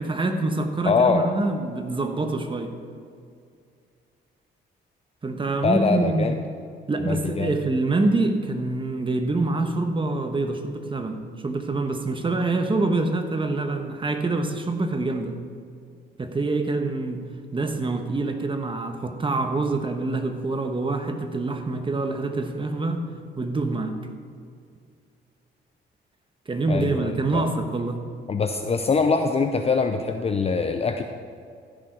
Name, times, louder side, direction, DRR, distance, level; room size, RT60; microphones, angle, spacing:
voice 1, 0.0-2.8 5.2-6.4 6.9-15.4 16.2-17.3 17.5-23.0 23.4-23.9 26.5-28.0, right 2 dB, 25° right, 5 dB, 1.2 m, -25 dB
voice 2, 0.9-1.3 5.6-6.4 7.0-7.5 26.7-27.4 28.3-31.0, left 4 dB, 30° left, 6 dB, 0.6 m, -23 dB
15.0 x 6.5 x 4.7 m, 2.3 s
cardioid pair, 90°, 20 cm